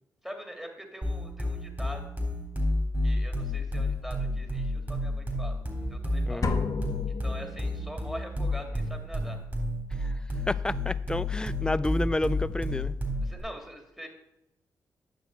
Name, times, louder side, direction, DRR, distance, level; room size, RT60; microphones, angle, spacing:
voice 1, 0.2-2.1 3.0-6.4 7.1-9.4 13.2-14.1, equal, 5° right, 3 dB, 2.2 m, -43 dB
sound 1, 1.0-13.4, left 1 dB, 25° right, 3.7 m, -30 dB
sound 2, 6.4-8.1, left 4 dB, 50° left, 1.0 m, -33 dB
voice 2, 10.5-13.0, left 1 dB, 10° left, 17 dB, 0.4 m, -30 dB
9.4 x 6.9 x 4.5 m, 0.87 s
supercardioid pair, 60°, 8 cm